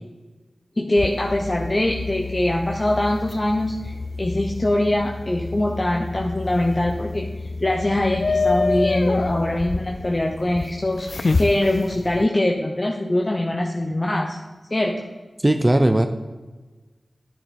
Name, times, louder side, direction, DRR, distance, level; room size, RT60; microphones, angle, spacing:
voice 1, 0.8-14.4 14.7-15.0, left 1 dB, 35° left, 1 dB, 0.9 m, -23 dB
sound 1, 1.0-12.3, left 3 dB, 55° left, 0.3 m, -28 dB
voice 2, 15.4-16.1, right 1 dB, 20° right, 7 dB, 0.6 m, -17 dB
10.0 x 8.7 x 4.5 m, 1.3 s
wide cardioid pair, 60°, 0 cm